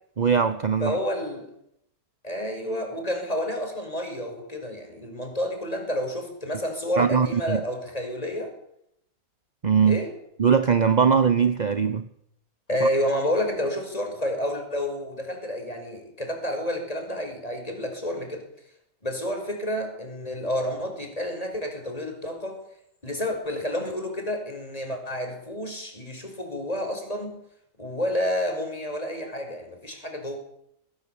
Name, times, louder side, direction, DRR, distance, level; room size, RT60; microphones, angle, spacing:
voice 1, 0.2-1.0 7.0-7.6 9.6-10.0 10.4-12.1 12.8-12.9, right 6 dB, 30° right, 11 dB, 0.9 m, -21 dB
voice 2, 0.8-1.5 2.2-8.5 9.9-10.1 12.7-18.5 19.0-22.6 23.0-27.3 27.8-30.4, left 1 dB, 20° left, 3 dB, 6.0 m, -29 dB
20.0 x 18.0 x 8.6 m, 0.73 s
omnidirectional pair, 1.8 m